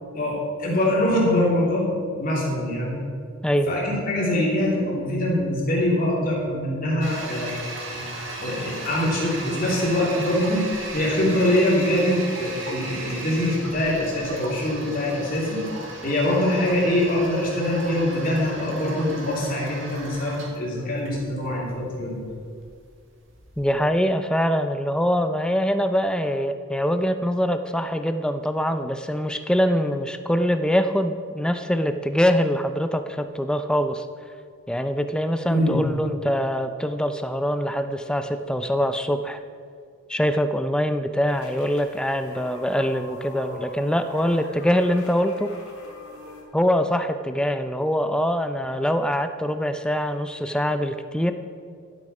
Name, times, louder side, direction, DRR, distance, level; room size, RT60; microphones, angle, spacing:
voice 1, 0.6-1.9 2.2-3.0 3.7-7.5 7.9-8.0 8.4-10.6 10.9-15.7 16.0-22.2 35.5-35.8, left 1 dB, 40° left, -4 dB, 2.9 m, -23 dB
voice 2, 3.4-3.8 23.6-34.1 34.7-39.4 40.1-45.5 46.5-51.3, equal, 5° left, 8 dB, 0.4 m, -23 dB
Toilet flush, 7.0-23.7, right 2 dB, 60° right, 1.9 m, -36 dB
sound 1, 41.3-46.4, left 1 dB, 85° left, 2.7 m, -42 dB
12.0 x 8.5 x 5.4 m, 2.2 s
head